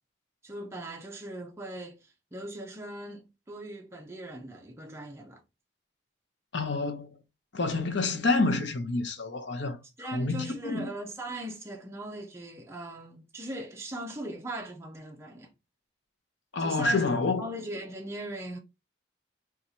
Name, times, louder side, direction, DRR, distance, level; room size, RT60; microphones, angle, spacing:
voice 1, 0.4-5.4 10.0-15.5 16.6-17.0 17.4-18.6, right 1 dB, 15° right, 0.5 m, -39 dB
voice 2, 6.5-7.2 7.5-9.8 10.1-10.9 16.5-17.5, left 3 dB, 65° left, 0.7 m, -28 dB
4.3 x 2.4 x 2.6 m
head